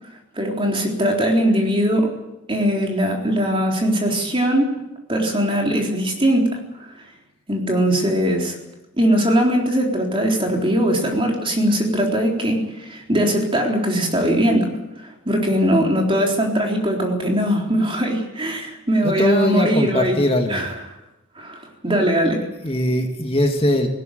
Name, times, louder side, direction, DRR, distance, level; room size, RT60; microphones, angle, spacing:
voice 1, 0.4-2.1 2.5-4.7 5.1-6.9 7.5-8.6 9.0-14.7 15.0-20.2 20.5-20.8 21.4-22.5, equal, 25° right, 0 dB, 3.9 m, -20 dB
voice 2, 19.0-20.7 22.6-23.9, left 1 dB, 25° left, 4 dB, 2.1 m, -20 dB
19.0 x 17.0 x 9.2 m, 0.98 s
head